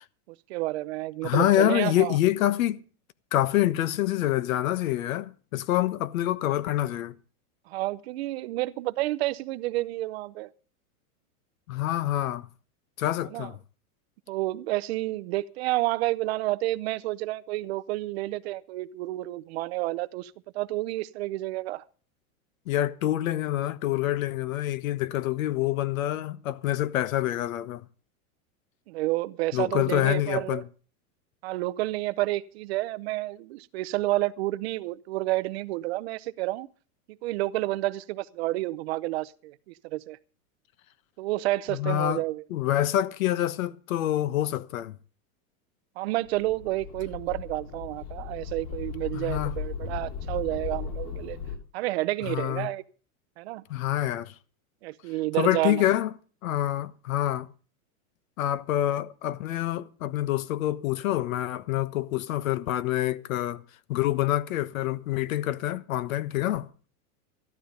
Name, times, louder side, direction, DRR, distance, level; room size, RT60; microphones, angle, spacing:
voice 1, 0.5-2.2 7.7-10.5 13.3-13.5 14.3-21.8 28.9-30.6 31.4-36.7 37.2-39.6 39.8-40.2 41.2-42.4 46.0-51.4 51.7-52.8 53.4-53.6 54.8-55.9, right 18 dB, 45° right, 0.7 m, -30 dB
voice 2, 1.2-2.8 3.3-7.1 11.7-12.5 13.0-13.5 22.7-27.8 29.5-30.6 41.7-42.2 42.5-45.0 49.1-49.5 52.2-52.7 53.7-54.3 55.4-56.1 56.4-57.5 58.4-63.6 63.9-66.7, left 13 dB, 65° left, 1.2 m, -26 dB
sound 1, 46.3-51.6, left 7 dB, 40° left, 3.0 m, -36 dB
14.5 x 12.5 x 5.2 m
supercardioid pair, 165°, 44 cm